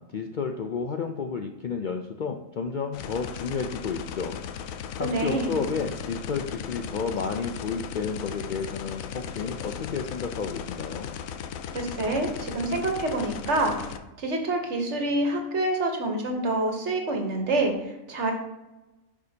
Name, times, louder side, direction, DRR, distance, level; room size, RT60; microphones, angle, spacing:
voice 1, 0.1-4.4 5.0-11.1, left 5 dB, 90° left, 4 dB, 0.4 m, -31 dB
sound 1, 2.9-14.0, left 8 dB, 75° left, 0.9 m, -37 dB
voice 2, 5.0-5.6 11.7-13.7 14.2-18.3, right 2 dB, 55° right, 3 dB, 1.4 m, -27 dB
10.5 x 4.9 x 2.8 m, 0.99 s
omnidirectional pair, 1.5 m